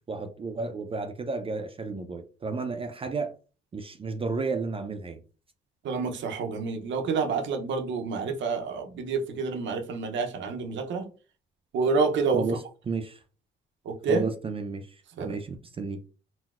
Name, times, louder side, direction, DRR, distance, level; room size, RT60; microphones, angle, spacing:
voice 1, 0.1-3.4 3.7-5.2 12.3-13.2 14.1-16.0, right 4 dB, 30° right, 0.4 m, -32 dB
voice 2, 5.8-11.1 11.7-12.5 13.9-14.2 15.2-15.4, right 4 dB, 70° right, 0.6 m, -28 dB
4.0 x 2.0 x 2.3 m
cardioid pair, 90°, 20 cm